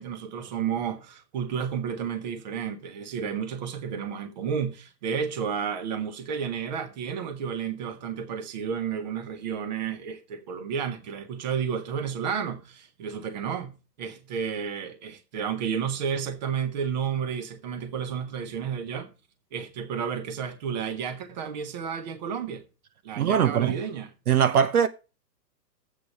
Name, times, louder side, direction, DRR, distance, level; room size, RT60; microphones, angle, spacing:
voice 1, 0.0-13.7 14.0-19.1 19.5-22.6 23.0-24.1, right 7 dB, 25° right, 1.3 m, -31 dB
voice 2, 23.2-23.7 24.3-24.9, right 8 dB, 60° right, 1.0 m, -21 dB
11.5 x 8.4 x 4.2 m
hypercardioid pair, 175°, 50 cm